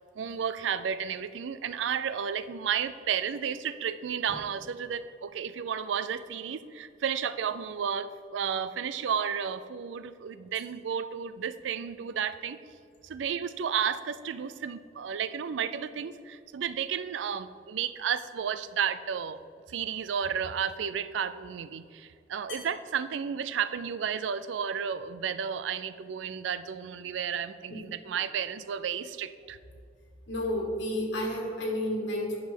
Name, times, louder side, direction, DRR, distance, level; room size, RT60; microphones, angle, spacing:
voice 1, 0.2-12.6 13.0-19.4 19.7-29.6, right 7 dB, 85° right, 13 dB, 0.4 m, -32 dB
voice 2, 30.3-32.4, left 1 dB, 85° left, -1 dB, 2.0 m, -31 dB
10.0 x 6.1 x 3.8 m, 2.3 s
head